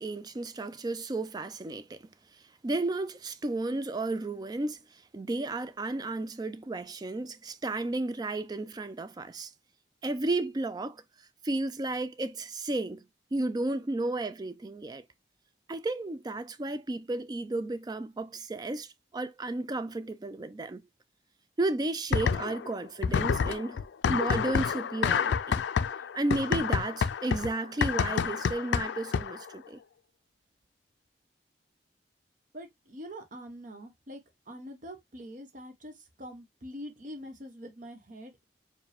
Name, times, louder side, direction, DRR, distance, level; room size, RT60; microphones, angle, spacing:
voice 1, 0.0-2.1 2.6-4.8 5.1-9.5 10.0-11.0 11.4-13.1 13.3-15.0 15.7-20.8 21.6-25.6 26.1-29.8, right 2 dB, 25° right, 0.4 m, -33 dB
sound 1, 22.1-22.7 23.0-29.5, left 6 dB, 85° left, 0.4 m, -28 dB
voice 2, 32.5-34.2 34.5-38.4, equal, 50° right, 1.0 m, -44 dB
4.7 x 2.2 x 3.4 m
head